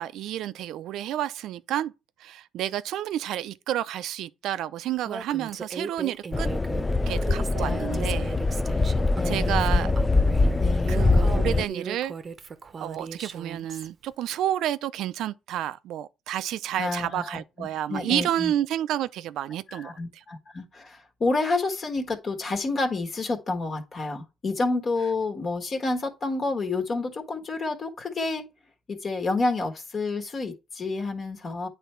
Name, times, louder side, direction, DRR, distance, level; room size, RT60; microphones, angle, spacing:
voice 1, 0.0-1.9 2.2-6.5 7.1-8.3 9.2-9.9 10.9-12.1 12.8-20.2, right 12 dB, 75° right, 0.5 m, -30 dB
Female speech woman speaking, 5.0-13.9, right 5 dB, 35° right, 0.8 m, -38 dB
sound 1, 6.3-11.7, left 3 dB, 20° left, 0.3 m, -23 dB
voice 2, 7.6-8.1 9.2-10.0 10.6-11.0 16.8-18.5 19.7-28.5 28.9-31.7, left 3 dB, 40° left, 1.4 m, -29 dB
9.2 x 3.4 x 4.4 m
cardioid pair, 100°, 0 cm